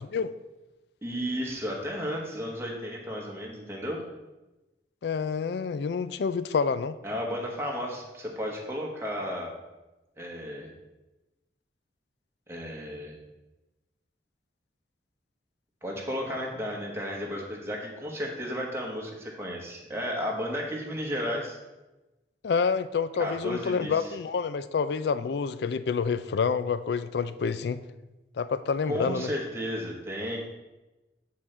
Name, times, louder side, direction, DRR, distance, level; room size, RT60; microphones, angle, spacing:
voice 1, 1.0-4.0 7.0-9.5 10.2-10.7 12.5-13.2 15.8-21.6 23.2-24.1 28.9-30.4, equal, 15° right, -2 dB, 1.0 m, -33 dB
voice 2, 5.0-7.0 22.4-27.8 28.4-29.3, left 5 dB, 65° left, 14 dB, 0.3 m, -28 dB
8.3 x 3.8 x 4.3 m, 1.0 s
head